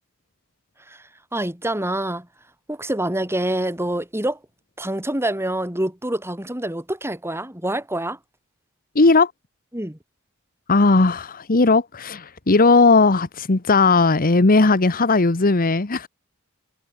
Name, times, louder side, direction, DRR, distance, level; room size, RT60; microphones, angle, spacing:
voice 1, 1.3-2.3 2.7-4.4 4.8-8.2 9.7-10.0, right 1 dB, 10° right, 4.3 m, -26 dB
voice 2, 8.9-9.3 10.7-16.1, left 3 dB, 40° left, 1.1 m, -17 dB
head